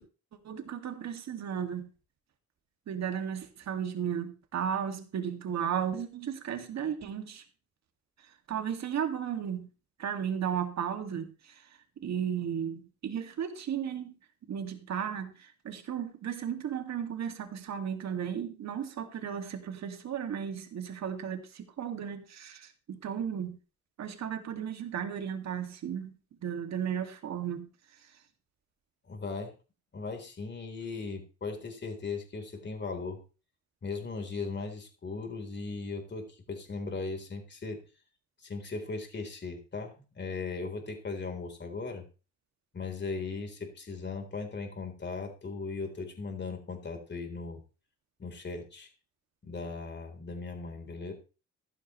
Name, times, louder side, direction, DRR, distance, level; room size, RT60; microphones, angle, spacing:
voice 1, 0.4-1.9 2.9-7.4 8.5-9.7 10.0-11.6 12.0-14.1 14.5-23.5 24.0-26.2 26.4-27.6, right 8 dB, 65° right, 6 dB, 2.3 m, -34 dB
voice 2, 29.1-29.5 29.9-33.2 33.8-37.8 38.4-42.0 42.7-47.6 48.2-48.9 49.4-51.1, left 4 dB, 35° left, 4 dB, 4.0 m, -38 dB
14.0 x 12.0 x 3.2 m, 0.33 s
cardioid pair, 90°, 30 cm